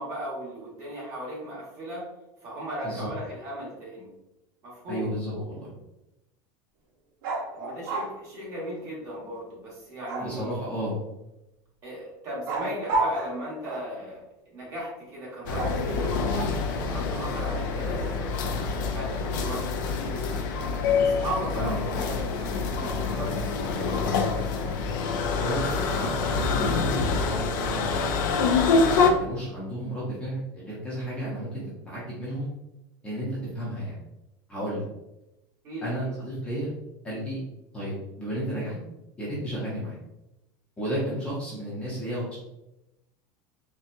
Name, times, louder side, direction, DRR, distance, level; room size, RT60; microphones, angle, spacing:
voice 1, 0.0-2.1 2.4-4.1 4.6-5.5 7.5-10.5 11.8-20.6 21.0-24.3 35.6-36.1, right 1 dB, 30° right, -6 dB, 1.3 m, -37 dB
voice 2, 4.9-5.7 10.2-10.9 21.6-21.8 25.4-28.4 29.0-32.5 33.0-34.0 34.5-34.8 35.8-36.7 37.0-37.4 37.7-38.7 39.2-39.9 40.8-42.4, right 1 dB, 10° left, -8 dB, 0.8 m, -33 dB
sound 1, 7.2-8.1 10.1-10.7 12.5-14.0 15.6-16.7, right 2 dB, 85° right, 0.9 m, -31 dB
sound 2, 15.5-29.1, left 4 dB, 80° left, 0.5 m, -26 dB
4.1 x 2.3 x 2.6 m, 0.93 s
cardioid pair, 175°, 10 cm